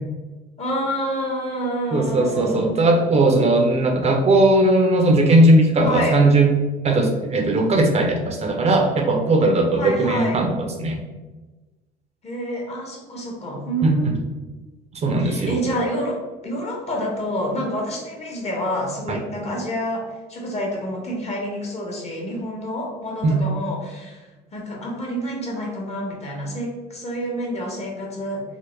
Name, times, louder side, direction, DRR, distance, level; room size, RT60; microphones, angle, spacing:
voice 1, 0.6-2.7 5.8-6.2 9.8-10.4 12.2-14.1 15.2-24.3 24.5-28.4, equal, 40° left, -1 dB, 0.9 m, -28 dB
voice 2, 1.9-6.5 6.8-10.5 10.8-11.0 13.8-14.1 14.9-15.6 19.1-19.2 23.2-23.4, right 2 dB, 40° right, 2 dB, 0.5 m, -18 dB
3.3 x 2.0 x 3.1 m, 1.2 s
cardioid pair, 100°, 18 cm